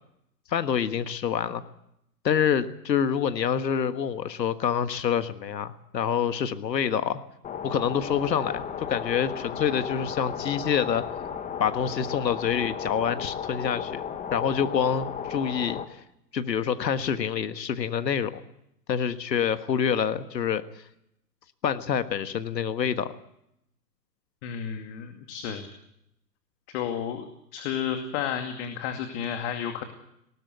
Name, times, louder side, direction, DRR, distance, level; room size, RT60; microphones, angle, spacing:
voice 1, 0.5-1.6 2.2-7.2 7.6-8.6 8.9-11.0 11.6-14.0 14.3-16.0 16.3-18.4 18.9-20.6 21.6-23.1, left 8 dB, 80° left, 11 dB, 1.6 m, -26 dB
sound 1, 7.4-15.8, left 7 dB, 15° left, 1.3 m, -34 dB
voice 2, 24.4-25.7 26.7-29.8, left 8 dB, 40° left, 6 dB, 2.5 m, -32 dB
20.0 x 18.5 x 8.3 m, 0.78 s
hypercardioid pair, 125°, 49 cm